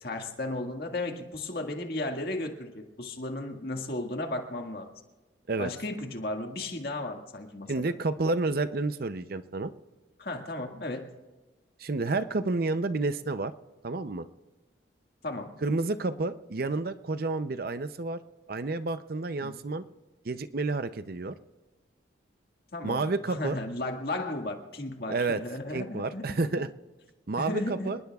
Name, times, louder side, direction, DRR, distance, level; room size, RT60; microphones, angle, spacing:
voice 1, 0.0-4.9 5.6-7.7 10.2-11.1 15.2-15.5 19.4-19.6 22.7-26.4 27.4-27.9, left 2 dB, 50° left, 3 dB, 1.9 m, -35 dB
voice 2, 7.7-9.7 11.8-13.5 13.8-14.3 15.6-18.2 18.5-19.8 20.2-21.3 22.8-23.6 25.1-25.4 25.7-26.7 27.3-28.0, right 3 dB, 50° right, 11 dB, 0.6 m, -30 dB
28.0 x 19.5 x 2.4 m, 1.2 s
head